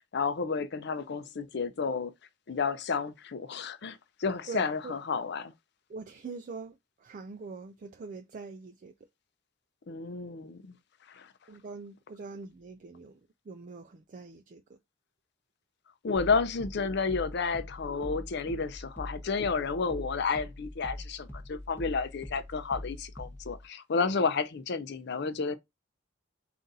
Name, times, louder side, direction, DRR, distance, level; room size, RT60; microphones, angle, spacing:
voice 1, 0.1-2.1 2.5-5.5 9.9-10.7 11.1-11.3 16.0-25.6, left 4 dB, 60° left, 0.5 m, -31 dB
voice 2, 4.5-4.9 5.9-8.9 11.5-13.2 13.5-14.8, right 4 dB, 45° right, 0.4 m, -43 dB
sound 1, 16.1-23.6, left 1 dB, 10° left, 0.9 m, -43 dB
3.9 x 2.5 x 3.9 m
head